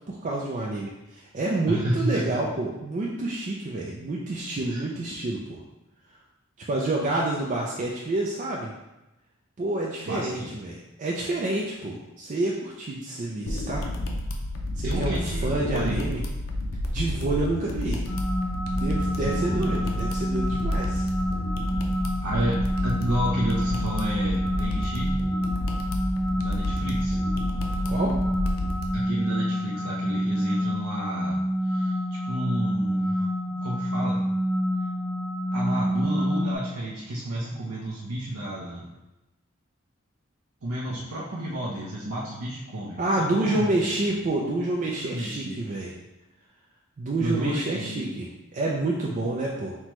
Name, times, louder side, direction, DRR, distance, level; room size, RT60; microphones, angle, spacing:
voice 1, 0.1-5.6 6.7-8.7 9.6-13.9 14.8-16.2 16.9-18.0 18.7-21.1 27.8-28.2 40.9-41.0 43.0-45.9 47.0-49.8, right 2 dB, 40° right, -2 dB, 0.4 m, -28 dB
voice 2, 1.7-2.4 4.7-4.9 10.1-10.5 14.8-16.0 19.2-19.7 22.2-25.2 26.4-27.2 28.9-31.4 31.6-34.3 35.5-38.9 40.6-43.0 43.3-43.9 45.0-45.6 47.2-48.1, right 1 dB, 85° right, -5 dB, 0.6 m, -31 dB
sound 1, 13.5-28.9, left 1 dB, 85° left, 0.6 m, -30 dB
sound 2, 18.1-36.6, equal, ahead, 0.9 m, -28 dB
5.8 x 2.2 x 3.0 m, 0.98 s
head